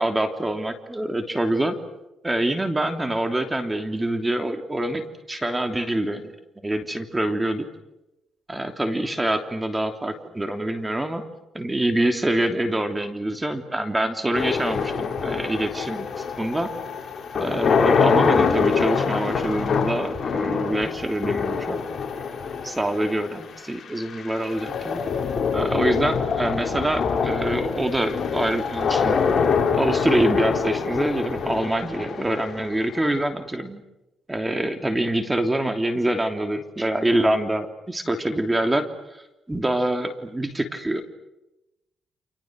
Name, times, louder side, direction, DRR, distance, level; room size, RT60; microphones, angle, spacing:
voice 1, 0.0-1.8 2.2-5.0 5.3-6.3 6.6-7.6 8.5-11.2 11.5-16.7 17.3-21.8 22.6-25.0 25.5-29.2 29.7-33.8 34.3-38.8 39.1-39.2 39.5-41.0, right 1 dB, 15° right, 6 dB, 3.1 m, -25 dB
sound 1, 14.3-33.4, left 5 dB, 45° left, 5.8 m, -25 dB
30.0 x 28.5 x 6.5 m, 0.94 s
cardioid pair, 90°, 0 cm